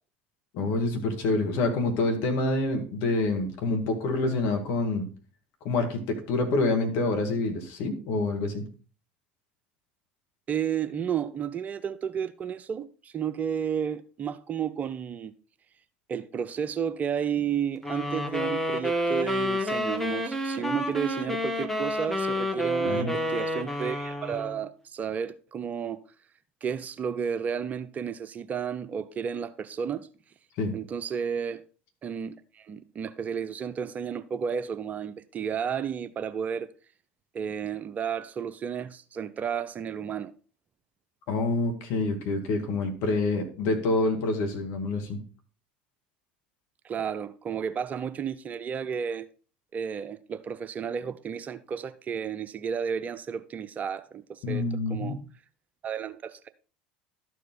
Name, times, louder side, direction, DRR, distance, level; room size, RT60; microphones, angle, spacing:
voice 1, 0.5-5.1 5.6-8.6 22.8-23.2 30.6-30.7 41.3-45.2 54.4-55.2, left 2 dB, 55° left, 1.9 m, -27 dB
voice 2, 10.5-15.3 16.1-26.0 26.6-30.1 30.7-31.6 32.0-36.7 37.3-40.3 46.8-49.3 49.7-55.2 55.8-56.5, right 7 dB, 30° right, 0.5 m, -32 dB
sound 1, 17.8-24.6, equal, 5° left, 1.2 m, -29 dB
12.5 x 4.7 x 3.9 m
figure-of-eight pair, 75°, 5 cm